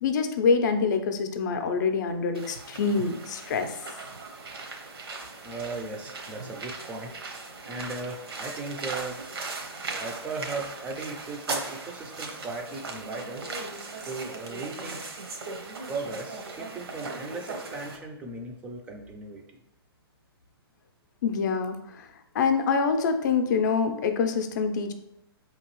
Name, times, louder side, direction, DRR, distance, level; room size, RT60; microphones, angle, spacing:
voice 1, 0.0-3.8 21.2-22.1 22.3-24.9, left 5 dB, 45° left, 7 dB, 0.5 m, -25 dB
sound 1, 2.3-18.0, right 3 dB, 75° right, 0.8 m, -38 dB
voice 2, 5.4-7.2 7.7-9.2 9.9-13.5 14.0-15.1 15.9-19.6, right 3 dB, 10° right, 1 dB, 0.4 m, -37 dB
4.6 x 2.9 x 3.0 m, 0.81 s
hypercardioid pair, 150°, 13 cm